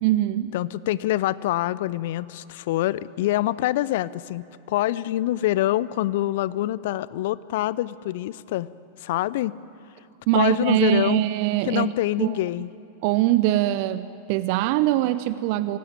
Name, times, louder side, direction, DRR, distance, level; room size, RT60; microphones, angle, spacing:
voice 1, 0.0-0.6 10.3-11.9 12.2-12.4 13.0-15.8, right 14 dB, 50° right, 15 dB, 0.7 m, -22 dB
voice 2, 0.5-8.7 9.0-9.5 10.3-11.2 11.7-12.7, left 15 dB, 55° left, 19 dB, 0.6 m, -25 dB
24.0 x 16.5 x 9.1 m, 2.7 s
figure-of-eight pair, 90°, 0 cm